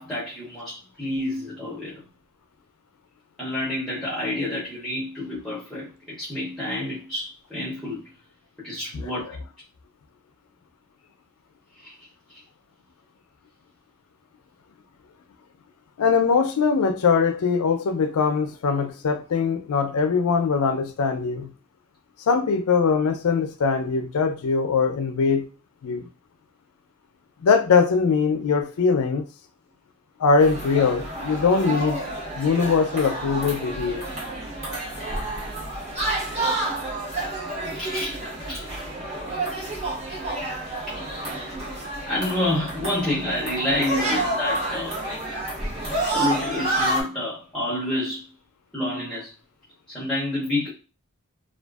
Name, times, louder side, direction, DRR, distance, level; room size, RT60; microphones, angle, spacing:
voice 1, 0.0-1.9 3.4-8.0 8.6-9.2 11.8-11.9 37.8-38.2 38.5-38.6 40.9-41.5 42.1-45.0 46.0-48.2 48.7-49.3 49.9-50.7, left 1 dB, ahead, 0.7 m, -28 dB
voice 2, 16.0-21.5 22.3-25.4 25.8-26.0 27.4-29.2 30.2-32.0 32.4-34.0, left 5 dB, 85° left, 0.4 m, -21 dB
sound 1, 30.4-47.0, right 2 dB, 30° right, 1.0 m, -29 dB
2.5 x 2.4 x 2.3 m
head